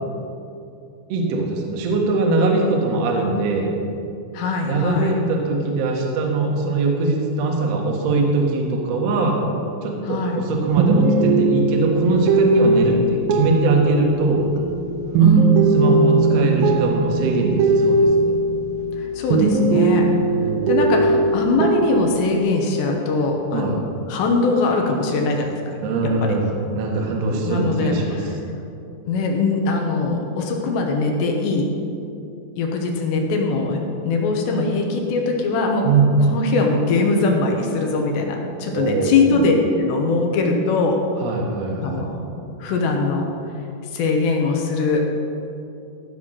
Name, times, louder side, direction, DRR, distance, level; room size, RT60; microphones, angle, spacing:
voice 1, 1.1-3.7 4.6-9.4 9.8-14.5 15.7-18.4 20.2-20.9 23.5-23.8 25.8-28.2 35.8-36.2 38.7-39.4 41.2-42.1, right 3 dB, 70° right, 0 dB, 1.5 m, -21 dB
voice 2, 4.3-5.2 10.0-10.4 15.2-15.6 19.0-20.1 20.7-23.8 24.1-25.8 26.2-26.4 27.4-28.3 29.1-31.7 32.6-33.8 34.0-35.9 36.3-41.4 41.8-42.2 42.6-43.3 43.9-45.1, left 3 dB, 75° left, 1 dB, 3.2 m, -21 dB
sound 1, 10.7-19.0 19.3-22.4, right 3 dB, 85° right, 2.0 m, -19 dB
15.5 x 5.6 x 6.4 m, 2.6 s
omnidirectional pair, 5.2 m